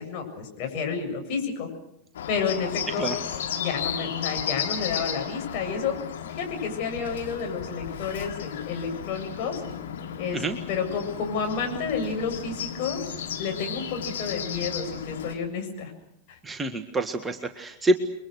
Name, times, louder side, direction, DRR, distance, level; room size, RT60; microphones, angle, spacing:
voice 1, 0.0-1.7 2.3-3.1 3.6-6.0 6.3-9.6 10.2-10.4 10.7-13.0 13.4-15.9 16.3-16.4, left 6 dB, 45° left, 3 dB, 7.5 m, -30 dB
Bird, 2.1-15.4, left 8 dB, 60° left, 2.9 m, -34 dB
voice 2, 16.4-18.0, right 2 dB, 10° right, 6 dB, 1.8 m, -26 dB
30.0 x 23.0 x 6.5 m, 0.79 s
figure-of-eight pair, 90°, 0 cm